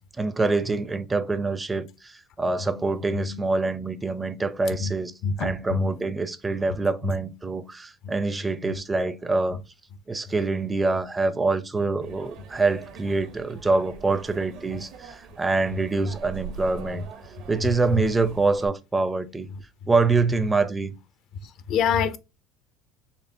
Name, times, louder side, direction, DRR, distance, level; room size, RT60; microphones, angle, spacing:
voice 1, 0.2-5.1 5.4-9.6 10.1-17.0 17.5-19.5 19.9-21.0, right 3 dB, 20° right, 0.5 m, -25 dB
voice 2, 2.6-3.5 4.7-4.9 5.2-6.0 7.0-7.2 8.0-8.8 10.3-10.4 13.0-13.2 13.6-13.7 14.1-14.2 14.7-14.8 15.7-16.1 16.9-17.1 17.6-18.1 19.5-19.9 20.4-20.5 21.4-22.2, left 5 dB, 60° left, 0.5 m, -30 dB
sound 1, 12.0-18.7, right 5 dB, 65° right, 0.8 m, -43 dB
4.3 x 3.0 x 2.7 m
supercardioid pair, 90°, 0 cm